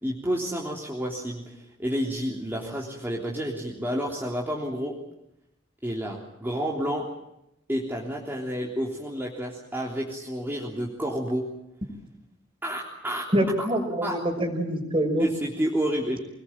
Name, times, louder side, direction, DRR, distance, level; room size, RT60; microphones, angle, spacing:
voice 1, 0.0-5.0 5.8-7.1 7.7-11.4 12.6-13.3 13.6-13.7 14.0-14.2 15.2-16.2, equal, 10° right, -2 dB, 3.4 m, -30 dB
voice 2, 13.3-15.3, right 1 dB, 30° right, 6 dB, 5.7 m, -25 dB
26.0 x 20.5 x 8.9 m, 0.84 s
head